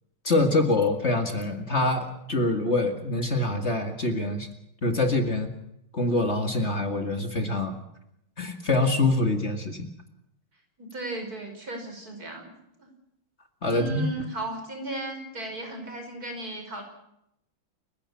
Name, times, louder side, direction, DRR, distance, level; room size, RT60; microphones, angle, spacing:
voice 1, 0.2-4.5 4.8-5.5 5.9-7.8 8.4-9.9 13.6-14.1, left 2 dB, 35° left, 5 dB, 2.3 m, -25 dB
voice 2, 10.8-12.9 13.7-16.8, right 2 dB, 45° right, 4 dB, 5.7 m, -36 dB
30.0 x 16.0 x 5.8 m, 0.79 s
omnidirectional pair, 2.2 m